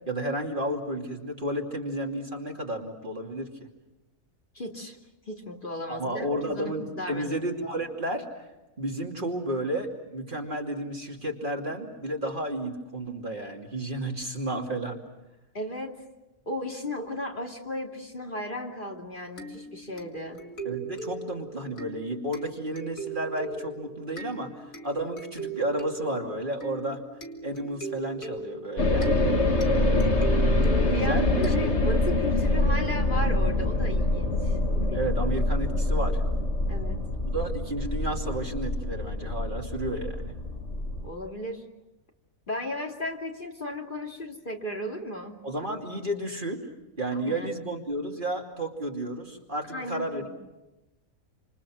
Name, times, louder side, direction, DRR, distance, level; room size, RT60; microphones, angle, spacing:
voice 1, 0.1-3.5 5.9-8.2 8.8-15.0 20.6-24.5 24.8-27.0 27.4-29.1 31.0-31.5 34.9-36.2 37.3-40.3 45.4-46.7 47.0-50.2, right 1 dB, 35° right, 1 dB, 2.9 m, -32 dB
voice 2, 4.5-5.0 5.3-7.8 15.5-16.0 16.5-20.4 30.9-35.2 36.7-37.0 41.0-41.6 42.5-45.4 47.1-47.5 49.7-50.4, left 1 dB, 35° left, 0 dB, 3.0 m, -35 dB
sound 1, 19.4-32.1, right 4 dB, 80° left, 2.6 m, -39 dB
sound 2, 28.8-41.1, left 1 dB, 55° left, 2.2 m, -25 dB
28.5 x 27.0 x 6.3 m, 1.0 s
omnidirectional pair, 1.4 m